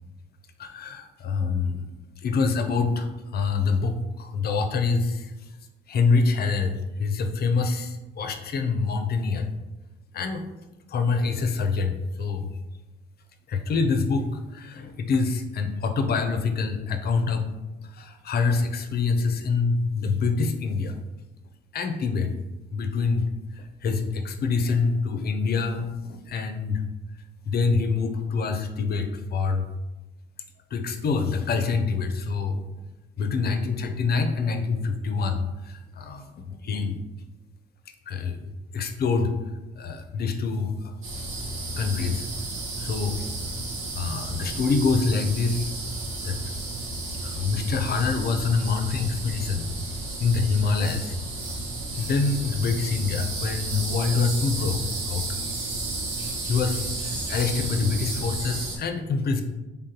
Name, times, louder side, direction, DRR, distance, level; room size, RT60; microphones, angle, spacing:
voice 1, 0.6-1.9 2.2-5.3 5.9-9.5 10.1-10.4 10.9-12.5 13.5-17.4 17.8-21.0 21.7-22.3 22.7-23.3 23.6-26.8 27.5-29.7 30.7-32.6 33.2-37.0 38.1-39.3 39.8-41.5 41.8-42.3 42.8-43.3 43.9-45.7 46.2-46.4 47.2-49.6 50.2-51.2 52.0-54.8 55.0-55.2 56.5-56.8 57.0-59.4, left 4 dB, 50° left, 7 dB, 0.5 m, -26 dB
sound 1, 41.0-58.8, right 2 dB, 80° right, 1.1 m, -32 dB
3.7 x 3.5 x 2.8 m, 1.1 s
cardioid pair, 90°, 20 cm